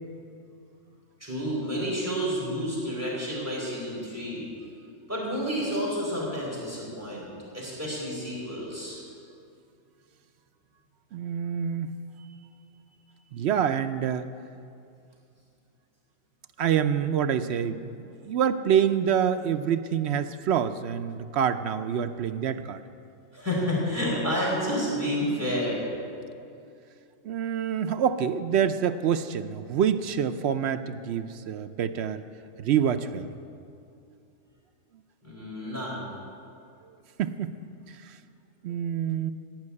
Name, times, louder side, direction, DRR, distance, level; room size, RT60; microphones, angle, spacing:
voice 1, 1.2-4.5 5.1-7.3 7.5-9.0 12.2-12.3 23.3-25.9 35.2-36.1, equal, 10° right, -6 dB, 4.2 m, -30 dB
voice 2, 11.1-11.9 13.3-14.3 16.6-18.0 18.2-22.8 27.2-32.2 32.6-33.3 37.2-37.6 38.6-39.3, right 8 dB, 65° right, 9 dB, 0.8 m, -26 dB
15.0 x 5.7 x 9.6 m, 2.5 s
omnidirectional pair, 1.3 m